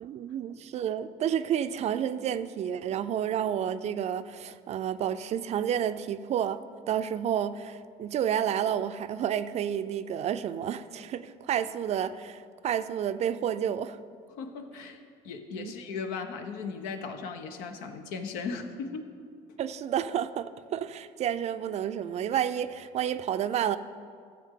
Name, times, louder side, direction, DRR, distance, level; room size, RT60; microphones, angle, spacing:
voice 1, 0.0-14.0 15.6-15.7 19.6-23.8, right 9 dB, 50° right, 13 dB, 0.5 m, -30 dB
voice 2, 14.4-15.0 15.2-19.1, left 5 dB, 80° left, 6 dB, 1.0 m, -37 dB
14.0 x 7.6 x 3.8 m, 2.2 s
supercardioid pair, 95°, 15 cm